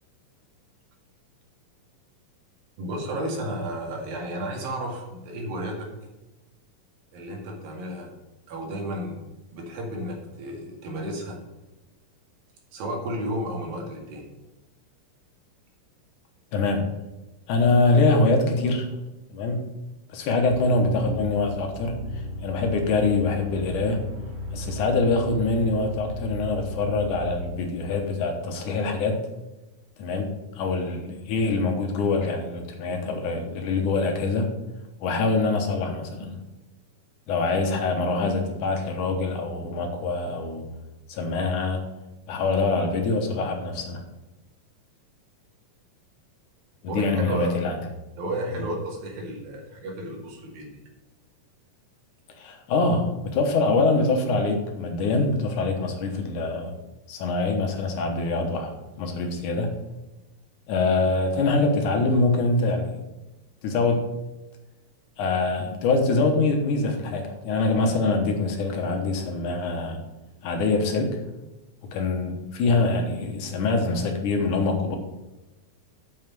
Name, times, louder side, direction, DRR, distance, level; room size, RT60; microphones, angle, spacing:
voice 1, 2.8-5.9 7.1-8.1 8.5-9.2 9.5-11.4 12.7-14.3 46.9-47.6 48.2-50.8, right 1 dB, 80° right, 0 dB, 3.8 m, -32 dB
voice 2, 16.5-16.9 17.5-18.9 19.3-19.7 20.1-24.0 24.5-29.2 30.0-30.3 30.6-34.5 35.0-36.4 37.3-40.6 41.1-41.8 42.3-44.0 46.8-47.8 52.4-56.8 57.1-58.7 59.0-59.7 60.7-63.0 63.6-64.1 65.2-70.0 70.4-71.2 71.9-75.0, left 3 dB, 70° left, 3 dB, 2.5 m, -24 dB
sound 1, 20.5-27.6, left 1 dB, 25° right, 1.7 m, -35 dB
7.7 x 5.5 x 7.6 m, 1.0 s
omnidirectional pair, 4.0 m